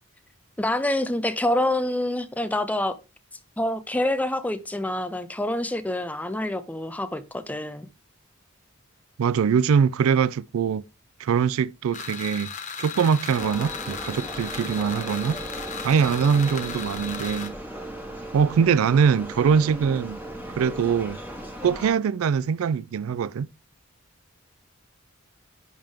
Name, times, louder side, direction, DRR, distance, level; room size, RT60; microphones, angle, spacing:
voice 1, 0.6-3.0 3.6-7.9, left 1 dB, 5° left, 0.5 m, -26 dB
voice 2, 9.2-10.8 11.2-12.5 12.8-15.4 15.8-17.5 18.3-20.2 20.5-21.2 21.6-23.5, right 6 dB, 85° right, 0.4 m, -22 dB
sound 1, 11.9-17.5, left 6 dB, 35° left, 1.0 m, -36 dB
sound 2, 13.3-21.9, right 1 dB, 10° right, 1.5 m, -37 dB
10.5 x 3.6 x 3.4 m
head